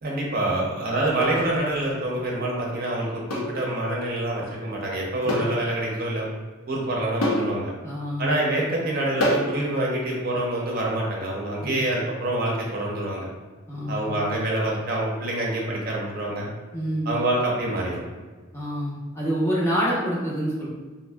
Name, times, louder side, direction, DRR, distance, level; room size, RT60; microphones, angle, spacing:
voice 1, 0.0-6.3 6.7-7.7 8.2-13.3 13.9-16.5 17.1-18.0, right 1 dB, 45° right, -3 dB, 0.6 m, -26 dB
sound 1, 1.3-1.5 3.3-3.5 5.3-5.6 5.9-6.0 7.2-7.5 9.2-9.5, equal, 90° left, 0.6 m, -25 dB
voice 2, 7.8-8.3 11.6-11.8 13.7-14.1 16.7-17.2 18.5-20.7, equal, 15° left, -7 dB, 0.6 m, -27 dB
4.0 x 2.6 x 2.2 m, 1.3 s
head